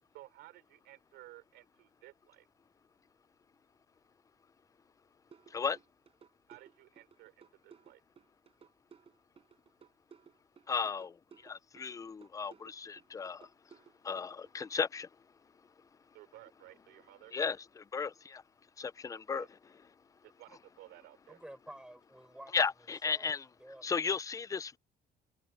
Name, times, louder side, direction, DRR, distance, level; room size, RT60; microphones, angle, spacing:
voice 1, 0.1-2.5 6.5-8.0 16.1-17.3 19.3-19.5 20.2-21.4, right 17 dB, 85° right, 4.0 m, -56 dB
sound 1, 5.3-14.7, right 7 dB, 35° right, 4.6 m, -59 dB
voice 2, 10.7-11.1 11.4-13.4 14.0-15.1 17.3-18.4 18.8-19.5 22.5-23.5 23.8-24.8, left 5 dB, 20° left, 0.4 m, -35 dB
voice 3, 21.3-22.5 23.0-23.9, right 1 dB, 5° right, 4.4 m, -51 dB
cardioid pair, 125°, 17 cm